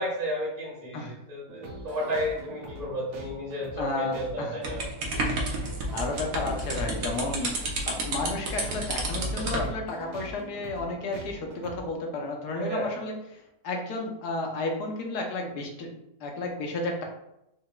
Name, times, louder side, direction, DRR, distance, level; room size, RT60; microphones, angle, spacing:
voice 1, 0.0-4.8 12.6-12.9, equal, 25° right, -7 dB, 1.3 m, -32 dB
sound 1, 1.5-11.8, right 2 dB, 75° right, 1.4 m, -43 dB
voice 2, 3.8-4.6 5.9-7.5 7.9-13.1 13.6-17.0, left 2 dB, 75° left, 2 dB, 1.3 m, -32 dB
sound 2, 4.6-9.7, right 1 dB, 60° right, 1.1 m, -30 dB
4.8 x 3.2 x 2.2 m, 0.84 s
omnidirectional pair, 1.8 m